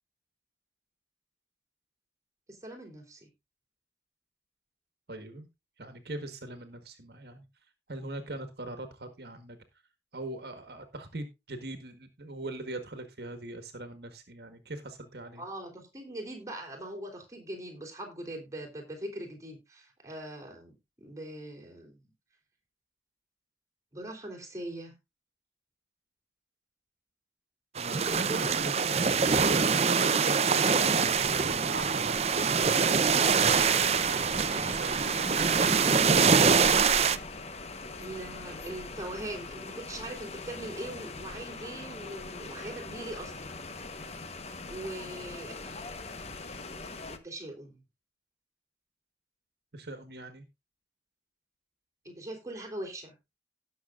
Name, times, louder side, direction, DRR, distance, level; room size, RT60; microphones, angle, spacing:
voice 1, 2.5-3.3 15.3-22.0 23.9-24.9 27.9-28.7 38.0-43.6 44.7-45.7 47.1-47.8 52.0-53.1, right 1 dB, 20° right, 0 dB, 3.3 m, -41 dB
voice 2, 5.1-5.5 5.8-7.4 7.9-9.6 10.1-15.4 27.7-28.7 29.5-32.2 32.6-33.8 34.0-34.4 34.6-34.9 49.7-50.4, right 2 dB, 65° right, 8 dB, 1.4 m, -40 dB
sound 1, 27.8-37.2, right 5 dB, 35° right, 0.6 m, -24 dB
sound 2, 33.0-47.2, left 3 dB, 35° left, 1.0 m, -42 dB
17.0 x 6.6 x 2.4 m, 0.24 s
head